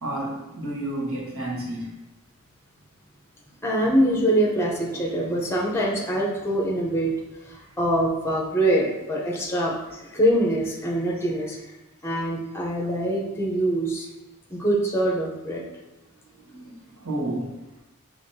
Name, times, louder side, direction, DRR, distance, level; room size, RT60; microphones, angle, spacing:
voice 1, 0.0-2.0 7.6-7.7 9.9-10.0 16.3-17.7, right 1 dB, 85° right, -4 dB, 1.4 m, -31 dB
voice 2, 3.6-7.1 7.4-9.8 10.1-11.6 12.0-14.1 14.5-15.6, right 1 dB, 10° left, -2 dB, 0.7 m, -24 dB
5.5 x 3.1 x 2.7 m, 1.1 s
head